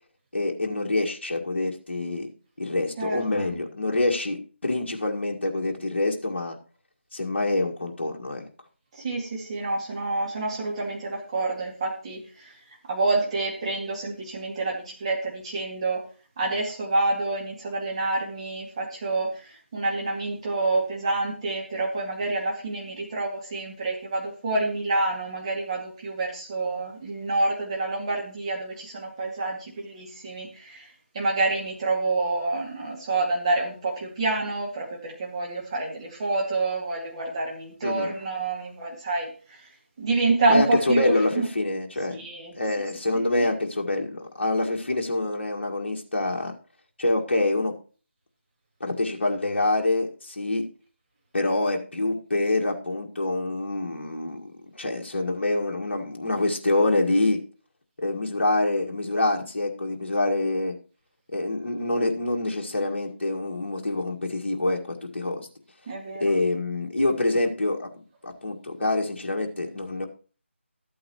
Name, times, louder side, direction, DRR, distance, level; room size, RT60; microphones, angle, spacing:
voice 1, 0.3-2.3 2.6-6.6 7.1-8.5 37.8-38.1 40.5-42.2 42.5-46.5 47.0-47.7 48.8-50.6 51.3-57.4 58.0-60.7 61.3-65.5 66.2-67.9 68.2-70.1, left 2 dB, 55° left, 1 dB, 1.8 m, -26 dB
voice 2, 3.0-3.5 8.9-12.5 12.9-16.0 16.4-30.9 31.1-39.7 40.0-41.5 42.1-42.5 43.4-43.5 65.9-66.3, right 2 dB, 25° right, -2 dB, 2.1 m, -28 dB
13.5 x 8.5 x 3.0 m, 0.37 s
figure-of-eight pair, 160°, 7 cm